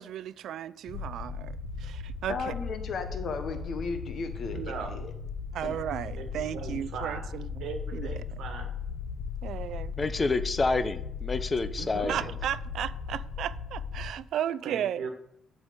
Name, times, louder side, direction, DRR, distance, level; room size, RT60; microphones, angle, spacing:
voice 1, 0.0-1.5 1.8-2.5 5.5-7.5 7.9-8.1 9.4-9.9 12.1-15.0, right 10 dB, 65° right, 0.3 m, -34 dB
sound 1, 0.9-14.1, left 5 dB, 70° left, 1.0 m, -37 dB
voice 2, 2.3-5.1 5.6-5.8, left 4 dB, 45° left, 1.0 m, -35 dB
voice 3, 4.5-4.9 6.2-7.3 7.6-8.7 11.8-12.1 14.6-15.1, right 6 dB, 80° right, 1.4 m, -38 dB
voice 4, 10.0-12.1, left 3 dB, 20° left, 0.4 m, -28 dB
9.4 x 5.3 x 5.0 m
cardioid pair, 180°, 0 cm